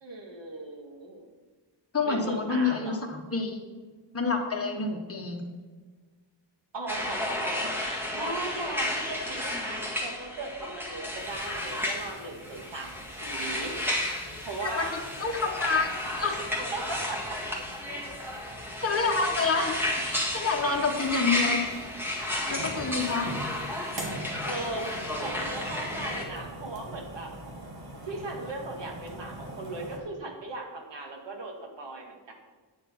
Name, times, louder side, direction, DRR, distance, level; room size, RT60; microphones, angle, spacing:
voice 1, 0.0-1.2 2.0-3.0 6.7-13.7 14.4-14.9 16.1-16.2 16.5-17.4 22.5-23.0 24.5-27.3 28.1-32.3, right 2 dB, 70° right, 1 dB, 2.0 m, -38 dB
voice 2, 1.9-3.6 4.1-5.4 14.6-15.9 16.2-16.5 18.8-19.8 20.0-21.6 22.5-23.3, left 4 dB, 30° left, 1 dB, 1.5 m, -28 dB
sound 1, 6.9-26.2, left 1 dB, 5° right, 1.8 m, -33 dB
sound 2, 11.2-30.0, right 1 dB, 55° right, 2.1 m, -44 dB
9.7 x 7.1 x 5.6 m, 1.4 s
wide cardioid pair, 140°, 45 cm